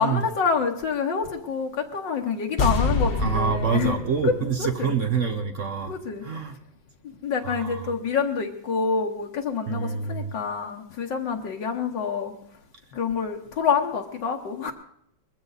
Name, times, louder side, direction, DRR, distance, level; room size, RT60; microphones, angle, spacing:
voice 1, 0.0-4.0 4.2-4.3 4.6-5.0 5.9-6.3 7.2-12.3 12.9-14.7, left 5 dB, 70° left, 3 dB, 1.8 m, -27 dB
sound 1, 2.6-5.8 6.0-6.1, left 3 dB, 40° left, 0.9 m, -28 dB
voice 2, 3.2-6.0 6.2-6.5 7.4-7.9 9.7-10.3, right 6 dB, 50° right, 7 dB, 1.0 m, -27 dB
21.0 x 15.0 x 4.0 m, 0.72 s
omnidirectional pair, 2.1 m